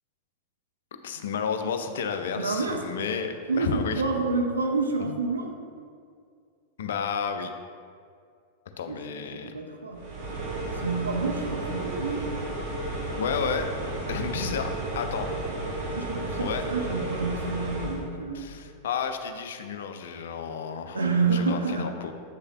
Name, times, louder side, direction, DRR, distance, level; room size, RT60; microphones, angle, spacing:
voice 1, 1.0-4.0 5.0-5.2 6.8-7.5 8.8-9.5 13.2-13.7 14.1-15.3 16.4-16.6 18.3-22.1, left 6 dB, 60° left, 7 dB, 0.5 m, -32 dB
voice 2, 2.4-2.8 3.5-5.6 8.9-9.0 9.3-10.1 10.7-12.2 15.9-18.6 20.9-21.9, right 4 dB, 75° right, 3 dB, 0.6 m, -28 dB
sound 1, 9.9-18.0, right 2 dB, 55° right, 1.3 m, -33 dB
8.2 x 6.4 x 2.3 m, 2.2 s
figure-of-eight pair, 90°, 0 cm